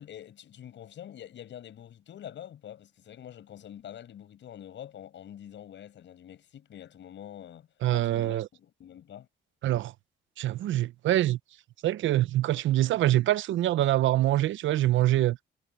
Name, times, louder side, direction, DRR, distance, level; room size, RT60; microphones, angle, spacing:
voice 1, 0.0-9.3, left 10 dB, 65° left, 6.3 m, -46 dB
voice 2, 7.8-8.5 9.6-9.9 10.4-11.4 11.8-15.4, right 14 dB, 75° right, 0.7 m, -25 dB
cardioid pair, 90°, 20 cm